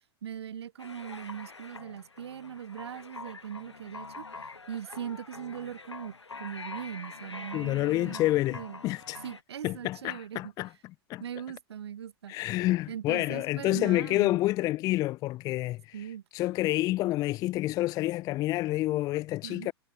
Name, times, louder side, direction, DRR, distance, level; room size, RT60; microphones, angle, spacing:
voice 1, 0.2-4.3 4.7-8.8 9.2-10.5 11.2-12.5 12.9-14.4 15.9-16.2 19.4-19.7, right 9 dB, 70° right, 0.5 m, -40 dB
sound 1, 0.8-9.4, left 3 dB, 85° left, 1.2 m, -45 dB
voice 2, 7.5-9.2 9.6-10.7 11.1-11.2 12.3-16.1 16.3-19.7, left 17 dB, 25° left, 0.3 m, -28 dB
figure-of-eight pair, 100°, 14 cm